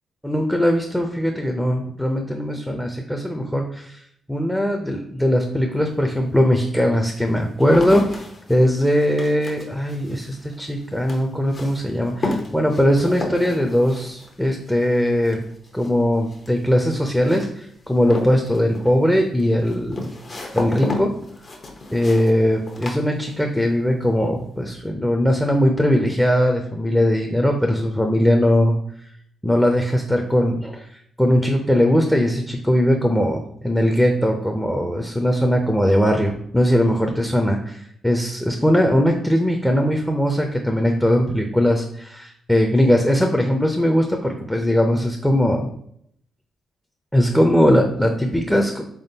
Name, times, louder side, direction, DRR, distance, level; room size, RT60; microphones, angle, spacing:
voice 1, 0.2-4.0 4.3-8.1 8.5-15.5 15.7-20.1 20.5-21.1 21.9-28.8 29.4-30.9 31.2-45.7 47.1-48.8, equal, 5° left, 3 dB, 0.5 m, -20 dB
sound 1, 5.8-5.9 6.5-23.7 24.0-24.6, left 2 dB, 45° left, 0.8 m, -33 dB
3.6 x 3.5 x 2.8 m, 0.67 s
supercardioid pair, 60°, 0 cm